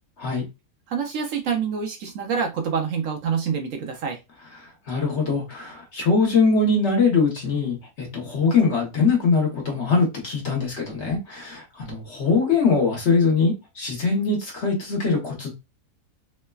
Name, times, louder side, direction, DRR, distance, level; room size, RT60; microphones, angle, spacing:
voice 1, 0.9-4.2, right 6 dB, 70° right, 0.9 m, -26 dB
voice 2, 4.9-15.5, left 4 dB, 55° left, 1.1 m, -22 dB
3.1 x 2.1 x 2.2 m
omnidirectional pair, 1.6 m